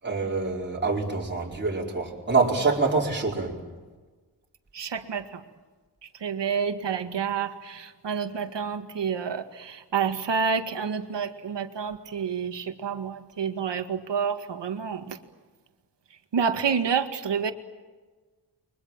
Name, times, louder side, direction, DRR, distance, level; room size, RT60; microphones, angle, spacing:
voice 1, 0.0-3.6, right 4 dB, 25° right, 5.0 m, -25 dB
voice 2, 4.7-5.2 6.2-15.2 16.3-17.5, right 6 dB, 80° right, 2.1 m, -29 dB
30.0 x 23.5 x 7.5 m
wide cardioid pair, 155°, 41 cm